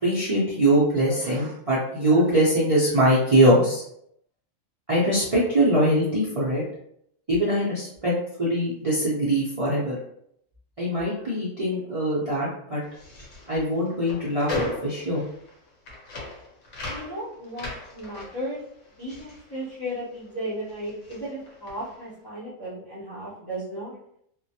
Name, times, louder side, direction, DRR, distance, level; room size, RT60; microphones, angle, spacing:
voice 1, 0.0-3.8 4.9-6.6 7.3-8.1 8.4-10.0 10.8-12.8 13.5-15.2, right 1 dB, 40° right, -9 dB, 0.5 m, -22 dB
sound 1, 12.8-20.3 20.6-22.1, left 2 dB, 75° left, 1.0 m, -38 dB
voice 2, 16.8-18.6 19.0-24.0, equal, 25° left, -10 dB, 0.6 m, -35 dB
2.2 x 2.1 x 2.7 m, 0.71 s
omnidirectional pair, 1.3 m